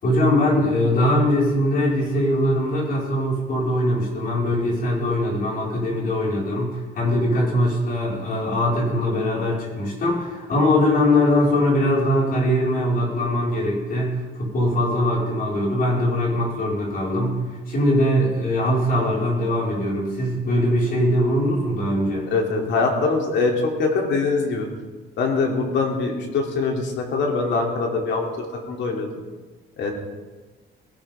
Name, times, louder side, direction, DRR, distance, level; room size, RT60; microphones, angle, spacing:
voice 1, 0.0-17.4 17.7-22.2, left 1 dB, 50° left, -4 dB, 6.0 m, -21 dB
voice 2, 22.3-24.7 25.2-28.3 28.7-29.1 29.8-29.9, left 4 dB, 70° left, 0 dB, 3.6 m, -23 dB
19.5 x 17.5 x 3.9 m, 1.3 s
cardioid pair, 150°, 20 cm